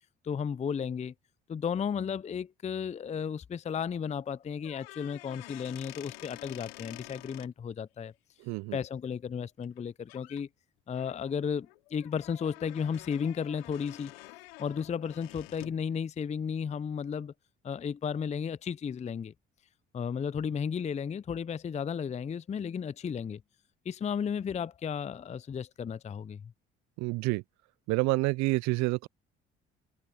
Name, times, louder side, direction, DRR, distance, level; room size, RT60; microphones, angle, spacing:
voice 1, 0.2-1.1 1.5-8.1 8.7-10.5 10.9-14.1 14.6-17.3 17.6-19.3 19.9-23.4 23.9-26.5, left 7 dB, 25° left, 0.5 m, -34 dB
sound 1, 4.6-7.5 9.6-9.8 10.1-10.4 10.9-15.8, left 21 dB, 90° left, 4.3 m, -49 dB
voice 2, 8.5-8.8 27.0-27.4 27.9-29.1, right 23 dB, 70° right, 0.5 m, -28 dB
hypercardioid pair, 60°, 29 cm